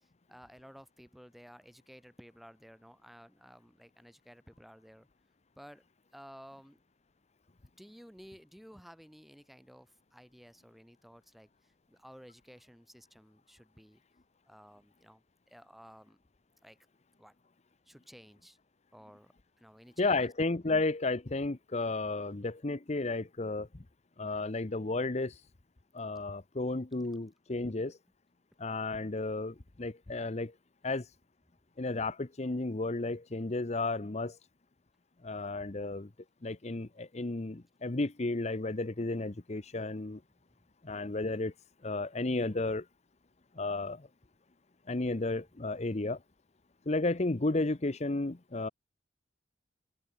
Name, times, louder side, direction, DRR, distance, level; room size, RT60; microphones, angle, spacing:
voice 1, 0.0-5.1 5.6-5.8 6.1-6.8 7.8-14.0 14.5-16.2 16.6-16.8 17.2-17.3 17.9-18.6 18.9-20.3 45.3-45.4, equal, ahead, 5.4 m, -55 dB
voice 2, 20.0-23.8 24.2-25.4 25.9-28.0 28.6-30.5 30.8-31.1 31.8-34.4 35.2-36.1 36.4-40.2 40.8-41.5 41.8-42.8 43.6-44.1 44.9-46.2 46.9-48.7, left 2 dB, 40° left, 0.9 m, -33 dB
head